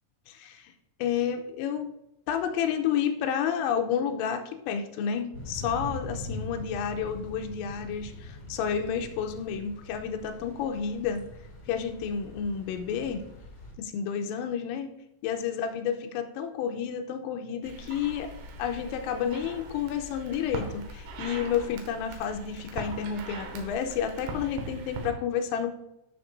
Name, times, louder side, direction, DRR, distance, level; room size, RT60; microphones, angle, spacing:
voice 1, 0.3-0.7 1.0-1.9 2.3-11.2 11.7-13.2 13.8-14.9 15.2-18.3 18.6-25.7, left 8 dB, 85° left, 5 dB, 3.2 m, -30 dB
Thunder / Rain, 5.3-13.7, left 1 dB, 35° left, 1.3 m, -42 dB
sound 1, 17.6-25.1, right 2 dB, 75° right, 3.6 m, -41 dB
14.0 x 6.1 x 2.5 m, 0.88 s
omnidirectional pair, 6.0 m